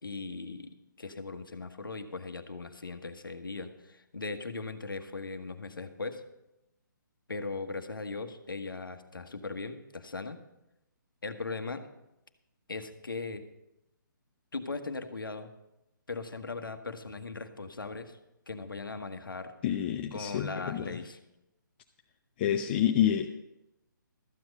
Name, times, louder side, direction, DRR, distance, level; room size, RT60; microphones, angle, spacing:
voice 1, 0.0-6.2 7.3-10.4 11.2-11.9 12.7-13.5 14.5-15.5 16.1-18.2 18.5-19.5 20.1-21.2, left 3 dB, 80° left, 7 dB, 1.2 m, -39 dB
voice 2, 19.6-21.0 22.4-23.4, left 10 dB, 30° left, 5 dB, 0.5 m, -28 dB
13.5 x 7.9 x 5.3 m, 0.91 s
figure-of-eight pair, 140°, 11 cm